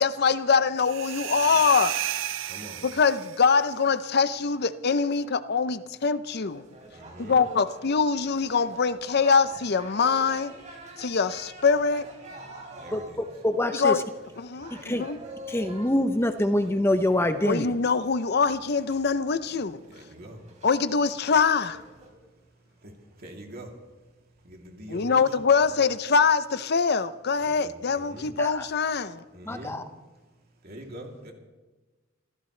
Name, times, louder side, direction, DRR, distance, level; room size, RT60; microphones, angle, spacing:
voice 1, 0.0-2.0 2.8-6.6 7.2-10.5 11.0-12.1 13.7-14.0 14.4-15.2 17.4-19.8 20.6-21.8 24.9-29.2, left 5 dB, 55° left, 0.7 m, -24 dB
sound 1, 0.8-3.5, right 11 dB, 90° right, 0.7 m, -32 dB
voice 2, 2.5-2.8 6.9-7.4 12.8-13.3 19.9-20.4 22.8-22.9 23.2-23.7 24.4-25.3 25.7-25.8 27.4-28.3 29.3-29.8 30.6-31.3, right 1 dB, 55° right, 3.0 m, -43 dB
sound 2, 6.4-22.1, right 1 dB, 35° right, 4.0 m, -47 dB
voice 3, 13.4-14.0 14.8-15.1 15.5-17.7 28.4-28.7 29.5-29.8, left 1 dB, 15° left, 0.7 m, -25 dB
27.0 x 15.5 x 3.3 m
head